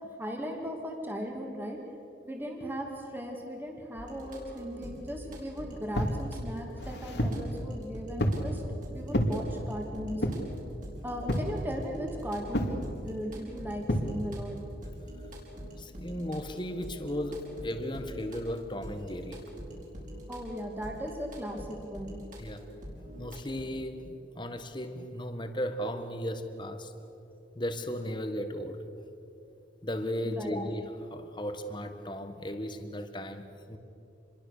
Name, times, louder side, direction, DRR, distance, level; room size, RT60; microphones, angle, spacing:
voice 1, 0.2-1.8 2.2-8.6 8.9-10.2 11.0-14.6 20.3-22.2 30.2-30.6, equal, 10° right, 1 dB, 2.6 m, -37 dB
sound 1, 4.0-23.6, equal, 45° right, 6.0 m, -44 dB
sound 2, 5.9-6.2 6.8-7.5 8.2-8.5 9.1-9.4 10.2-10.5 11.3-11.6 12.5-12.8 13.9-14.1, equal, 65° left, 2.5 m, -29 dB
voice 2, 15.8-19.4 22.4-22.7 23.2-26.9 27.5-28.8 29.8-33.8, equal, 25° left, 7 dB, 1.6 m, -36 dB
27.5 x 22.0 x 6.8 m, 2.8 s
head